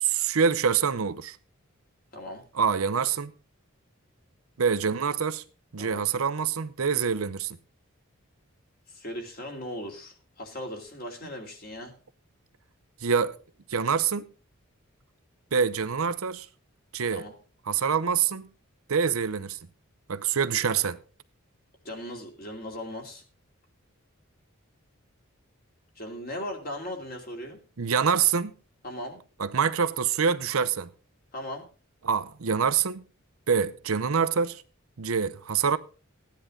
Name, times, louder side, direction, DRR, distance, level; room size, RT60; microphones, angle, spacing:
voice 1, 0.0-1.4 2.5-3.3 4.6-5.4 5.7-7.6 13.0-13.4 13.7-14.3 15.5-16.5 16.9-17.2 17.7-18.4 18.9-19.6 20.1-21.0 27.8-28.5 29.4-30.9 32.0-33.0 33.5-34.6 35.0-35.8, right 6 dB, 80° right, 0.7 m, -25 dB
voice 2, 2.1-2.4 5.8-6.1 8.9-11.9 17.2-17.3 21.8-23.2 26.0-27.6 28.8-29.2 31.3-31.7, left 1 dB, 45° left, 2.7 m, -38 dB
14.5 x 10.0 x 3.8 m
head